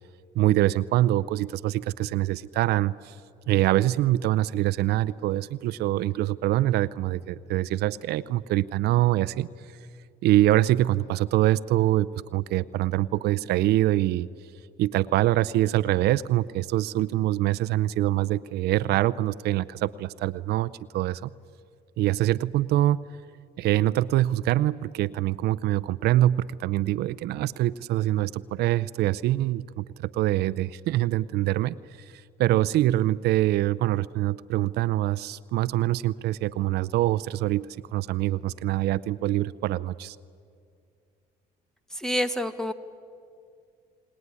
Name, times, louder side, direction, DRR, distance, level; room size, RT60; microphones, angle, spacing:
voice 1, 0.3-3.2 3.5-9.5 10.2-14.3 14.8-21.3 22.0-23.0 23.6-31.8 32.4-37.7 37.9-40.2, right 15 dB, 75° right, 16 dB, 0.5 m, -24 dB
voice 2, 41.9-42.7, equal, 5° left, 10 dB, 1.3 m, -27 dB
29.0 x 19.5 x 9.7 m, 2.4 s
cardioid pair, 110°, 17 cm